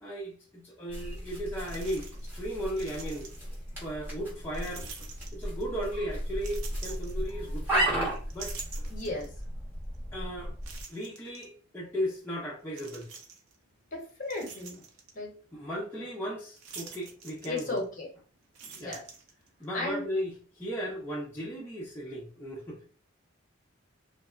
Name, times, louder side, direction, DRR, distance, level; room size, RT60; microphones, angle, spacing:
voice 1, 0.0-3.3 3.8-4.9 5.3-8.6 10.1-10.5 10.9-13.1 15.5-17.8 18.6-19.0 19.6-22.8, equal, 10° left, 0.5 m, -36 dB
sound 1, 0.9-10.8, right 1 dB, 10° right, 0.8 m, -35 dB
sound 2, 1.1-1.2 1.7-2.4 2.7-3.6 4.5-5.8 6.4-7.8 8.2-9.4 9.9-10.0 10.6-11.5 12.7-13.6 14.0-15.2 16.6-18.1 18.4-19.7, right 5 dB, 80° right, 0.6 m, -46 dB
voice 2, 8.9-9.3 13.9-14.8 15.1-15.3 17.4-18.1 18.7-19.0 19.7-20.0, left 2 dB, 40° left, 0.8 m, -34 dB
2.8 x 2.1 x 2.3 m
head